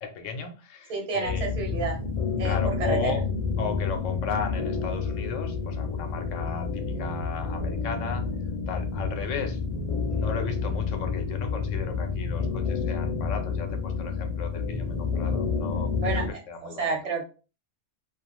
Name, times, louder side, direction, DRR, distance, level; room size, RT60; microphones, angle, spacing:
voice 1, 0.0-1.5 2.4-3.2 3.6-8.3 8.7-9.6 10.1-17.0, left 5 dB, 90° left, 6 dB, 0.9 m, -35 dB
voice 2, 0.9-2.0 2.4-3.1 16.0-17.2, right 4 dB, 40° right, 1 dB, 0.8 m, -30 dB
sound 1, 1.2-16.3, left 5 dB, 50° left, 0.4 m, -29 dB
2.3 x 2.3 x 2.9 m, 0.34 s
omnidirectional pair, 1.2 m